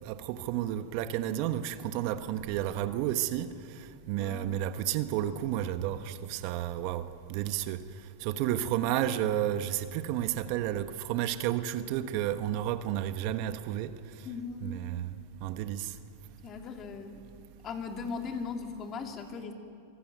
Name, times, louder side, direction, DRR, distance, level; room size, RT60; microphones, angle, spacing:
voice 1, 0.0-7.8 8.2-13.9 14.6-15.1 15.4-15.9, right 12 dB, 55° right, 1.2 m, -31 dB
voice 2, 4.2-4.5 14.2-14.7 16.4-17.2 17.6-19.5, left 5 dB, 35° left, 2.8 m, -38 dB
25.0 x 15.5 x 9.2 m
hypercardioid pair, 110°, 0 cm